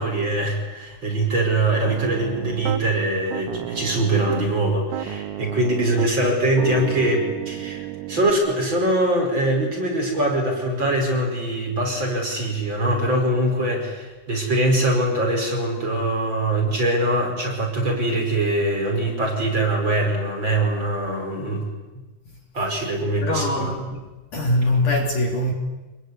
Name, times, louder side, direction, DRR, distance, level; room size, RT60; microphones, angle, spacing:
voice 1, 0.0-21.6 22.5-23.7, right 1 dB, 25° right, 5.7 m, -23 dB
Piano, 1.8-2.8 3.3-4.6 4.9-8.3, right 14 dB, 75° right, 2.9 m, -32 dB
voice 2, 23.2-25.5, left 1 dB, 50° left, 3.8 m, -23 dB
26.0 x 21.5 x 9.8 m
omnidirectional pair, 5.0 m